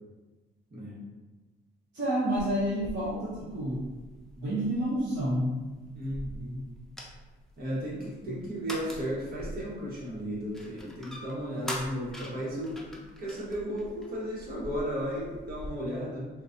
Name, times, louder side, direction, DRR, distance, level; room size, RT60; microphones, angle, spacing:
voice 1, 1.9-3.8 4.4-5.6, right 1 dB, 65° right, -9 dB, 1.0 m, -29 dB
sound 1, 2.4-15.7, equal, ahead, 0.6 m, -44 dB
voice 2, 5.9-6.7 7.6-16.3, equal, 50° right, -6 dB, 1.3 m, -35 dB
3.9 x 2.4 x 2.5 m, 1.2 s
cardioid pair, 90°, 20 cm